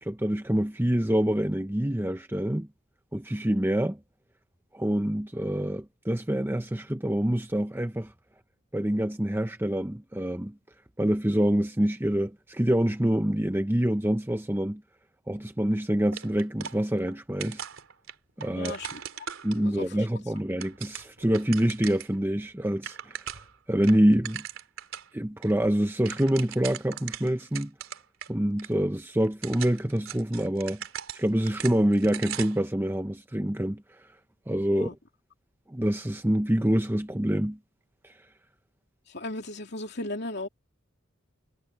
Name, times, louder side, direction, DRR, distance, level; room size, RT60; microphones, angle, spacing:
voice 1, 0.0-2.7 3.1-4.0 4.7-8.1 8.7-10.5 11.0-14.8 15.3-17.6 18.4-18.8 19.4-23.4 23.7-24.4 25.1-27.7 28.3-30.8 31.1-34.1 34.5-34.9 35.7-37.6 38.0-38.1, right 1 dB, 10° right, 0.7 m, -26 dB
sound 1, 16.1-17.1 17.4-19.9 20.4-22.2 22.5-22.6 22.8-23.5 23.8-25.1 25.4-25.5 25.8-28.3 28.6-28.7 29.2-32.7, right 9 dB, 80° right, 3.3 m, -39 dB
voice 2, 18.5-19.0 19.5-20.0 34.7-34.9 39.1-40.5, left 2 dB, 55° left, 2.9 m, -36 dB
head